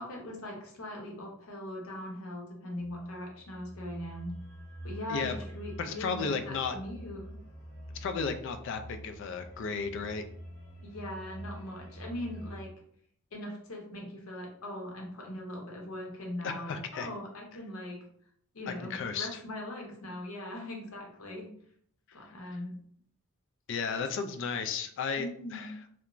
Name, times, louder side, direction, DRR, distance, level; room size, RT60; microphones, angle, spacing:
voice 1, 0.0-4.3 4.8-7.4 10.8-12.7 13.3-18.0 18.5-21.5 22.1-22.7 23.9-24.0 25.2-25.7, left 1 dB, 85° left, 0 dB, 0.8 m, -40 dB
sound 1, 2.8-12.6, equal, 40° left, 0.7 m, -46 dB
voice 2, 5.8-6.8 8.0-10.2 16.4-17.1 18.7-19.3 22.4-22.6 23.7-25.7, left 5 dB, 60° left, 9 dB, 0.3 m, -34 dB
2.4 x 2.1 x 2.9 m, 0.64 s
head